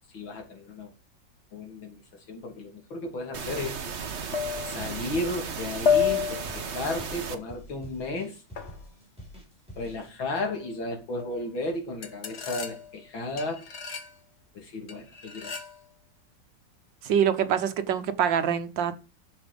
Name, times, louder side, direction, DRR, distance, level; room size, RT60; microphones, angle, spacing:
voice 1, 0.1-0.9 1.5-3.8 4.6-8.4 9.8-13.7 14.5-15.5, left 2 dB, 85° left, 3 dB, 3.5 m, -34 dB
sound 1, 3.2-3.3 4.3-5.0 5.8-6.7 8.6-8.8 10.4-10.8 11.2-11.5 12.0-13.0 13.4-14.1 14.9-15.8, left 7 dB, 40° left, 1.5 m, -30 dB
sound 2, 3.3-7.3, right 6 dB, 40° right, 1.3 m, -35 dB
sound 3, 5.1-10.1, equal, 5° right, 6.2 m, -46 dB
voice 2, 17.0-18.9, right 8 dB, 75° right, 11 dB, 1.7 m, -25 dB
11.0 x 7.2 x 5.3 m, 0.32 s
omnidirectional pair, 2.1 m